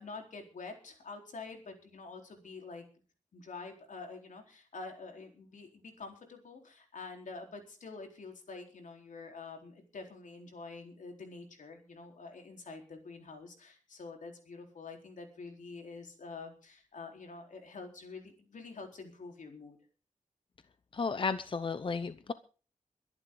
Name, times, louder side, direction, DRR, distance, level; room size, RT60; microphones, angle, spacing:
voice 1, 0.0-2.8 3.3-19.8, left 4 dB, 75° left, 3 dB, 4.1 m, -47 dB
voice 2, 20.9-22.3, left 4 dB, 40° left, 12 dB, 0.7 m, -33 dB
23.0 x 11.0 x 3.9 m, 0.38 s
wide cardioid pair, 160°, 13 cm